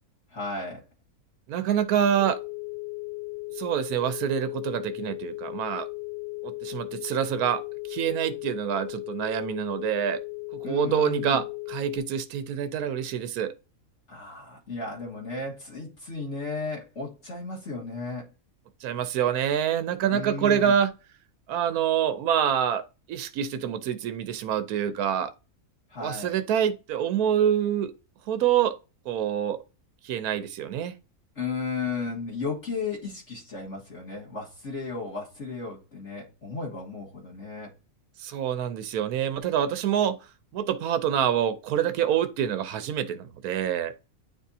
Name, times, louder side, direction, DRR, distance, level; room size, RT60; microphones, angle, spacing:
voice 1, 0.3-0.8 10.6-11.4 14.1-18.3 20.1-20.8 25.9-26.4 31.4-37.7, left 4 dB, 55° left, 2.0 m, -34 dB
voice 2, 1.5-2.4 3.6-5.9 6.4-7.6 7.9-10.2 10.6-13.5 18.8-20.9 21.5-25.3 26.0-27.9 28.3-28.7 29.1-29.6 30.0-30.9 38.2-40.2 40.5-43.9, right 9 dB, 80° right, 1.2 m, -26 dB
sound 1, 2.2-12.0, left 25 dB, 5° left, 0.6 m, -37 dB
9.7 x 3.6 x 2.7 m
omnidirectional pair, 1.5 m